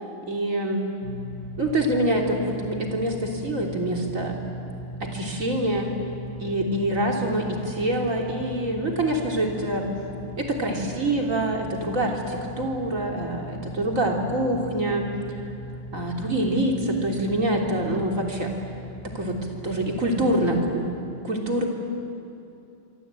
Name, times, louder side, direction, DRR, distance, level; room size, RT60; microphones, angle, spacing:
voice 1, 0.2-0.9 1.6-4.4 5.0-5.9 6.4-9.8 10.4-15.1 15.9-18.5 19.1-20.9 21.2-21.7, right 1 dB, 85° right, 0 dB, 3.8 m, -25 dB
sound 1, 1.0-20.7, equal, 55° left, 4.8 m, -38 dB
26.5 x 24.5 x 9.1 m, 2.7 s
omnidirectional pair, 1.4 m